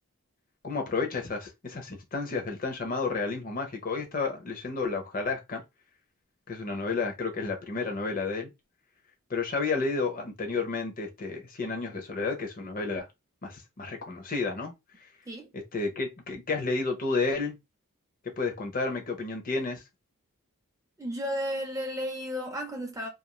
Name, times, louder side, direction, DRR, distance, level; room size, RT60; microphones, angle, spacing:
voice 1, 0.6-5.6 6.5-8.5 9.3-13.1 13.4-14.7 15.0-15.1 15.5-17.6 18.4-19.8, left 4 dB, 40° left, 0.6 m, -31 dB
voice 2, 21.0-23.1, equal, 15° right, 0.5 m, -33 dB
2.4 x 2.3 x 2.9 m
head